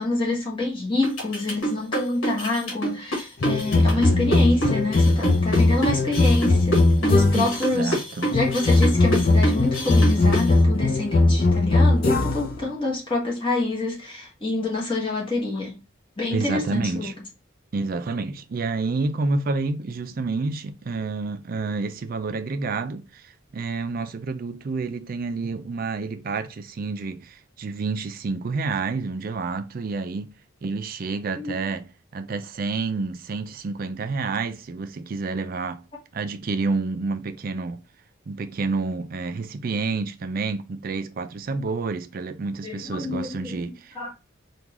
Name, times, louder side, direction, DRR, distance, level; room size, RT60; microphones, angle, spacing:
voice 1, 0.0-7.9 8.3-15.7 16.2-17.1 31.3-31.6 42.6-43.6 43.9-44.1, left 2 dB, 25° left, 1.2 m, -27 dB
sound 1, 1.0-10.5, right 1 dB, 70° left, 1.3 m, -27 dB
sound 2, 3.4-7.6 8.3-12.6, left 2 dB, 45° left, 0.5 m, -19 dB
voice 2, 3.7-4.5 7.3-8.3 16.3-17.1 17.7-30.3 30.6-31.9 32.1-35.8 36.1-37.8 38.3-44.0, right 3 dB, 45° right, 0.4 m, -29 dB
3.7 x 2.4 x 2.9 m
head